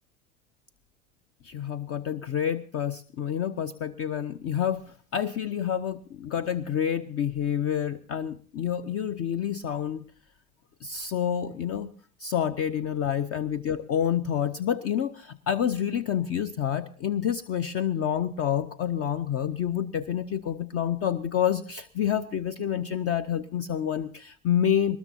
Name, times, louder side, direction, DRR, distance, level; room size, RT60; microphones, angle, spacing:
voice 1, 1.4-10.0 10.8-11.9 12.2-25.0, left 9 dB, 30° left, 16 dB, 0.7 m, -28 dB
21.5 x 20.0 x 2.8 m, 0.42 s
figure-of-eight pair, 80°, 44 cm